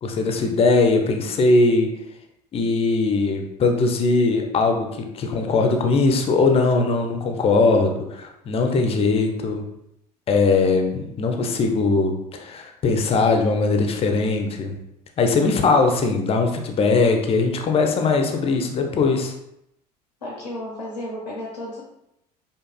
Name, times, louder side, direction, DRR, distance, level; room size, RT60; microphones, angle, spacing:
voice 1, 0.0-1.9 2.5-9.6 10.3-14.8 15.2-19.3, left 3 dB, 30° left, 4 dB, 0.4 m, -20 dB
voice 2, 20.2-21.8, left 1 dB, 85° left, -2 dB, 0.4 m, -33 dB
2.7 x 2.3 x 2.2 m, 0.81 s
figure-of-eight pair, 65°, 21 cm